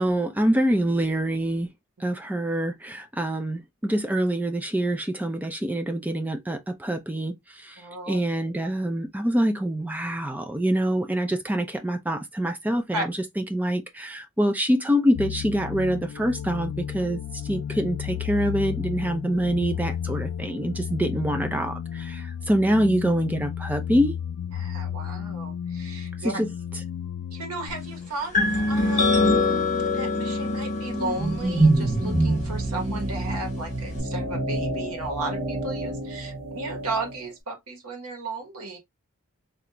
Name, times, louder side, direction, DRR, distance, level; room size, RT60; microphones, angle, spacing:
voice 1, 0.0-1.7 2.0-24.2 26.2-26.5, right 1 dB, 5° right, 0.4 m, -25 dB
voice 2, 7.8-8.2 9.8-10.0 12.9-13.0 24.5-26.3 27.3-29.3 29.8-38.8, right 2 dB, 90° right, 1.2 m, -35 dB
sound 1, 15.1-28.1, left 9 dB, 80° left, 0.3 m, -33 dB
sound 2, 28.3-34.0, left 3 dB, 35° left, 0.8 m, -26 dB
sound 3, 30.9-37.2, right 2 dB, 45° right, 1.4 m, -26 dB
3.3 x 2.5 x 2.9 m
head